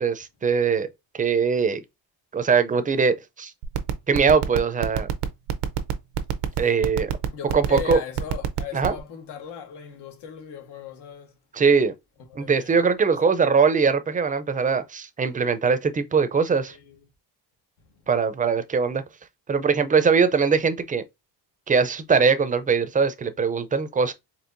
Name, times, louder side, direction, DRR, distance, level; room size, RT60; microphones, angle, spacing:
voice 1, 0.0-0.9 1.1-1.8 2.3-3.5 4.1-5.1 6.6-7.1 7.5-8.0 8.7-9.0 11.5-11.9 12.4-16.7 18.1-19.0 19.5-21.0 21.7-24.1, right 5 dB, 20° right, 0.4 m, -21 dB
sound 1, 3.6-9.0, right 11 dB, 90° right, 0.7 m, -24 dB
voice 2, 7.3-11.3 12.3-12.8 13.1-13.2 16.7-16.9, left 8 dB, 85° left, 1.2 m, -38 dB
4.5 x 2.8 x 2.5 m
cardioid pair, 130°, 40 cm